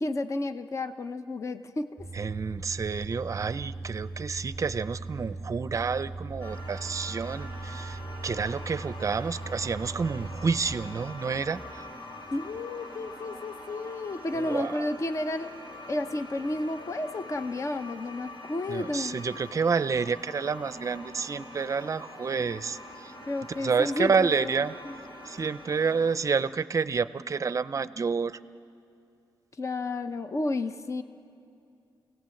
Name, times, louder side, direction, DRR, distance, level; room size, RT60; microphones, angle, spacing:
voice 1, 0.0-2.0 12.3-15.5 15.9-19.2 23.2-24.9 29.6-31.0, left 2 dB, 35° left, 9 dB, 0.7 m, -32 dB
sound 1, 2.0-12.6, right 2 dB, 5° right, 1.9 m, -40 dB
voice 2, 2.1-11.8 14.3-14.9 18.7-23.1 23.6-24.7 25.2-28.4, right 5 dB, 40° right, 14 dB, 0.5 m, -29 dB
sound 2, 6.4-26.2, left 1 dB, 65° left, 3.3 m, -44 dB
28.0 x 18.0 x 7.7 m, 2.6 s
wide cardioid pair, 160°, 8 cm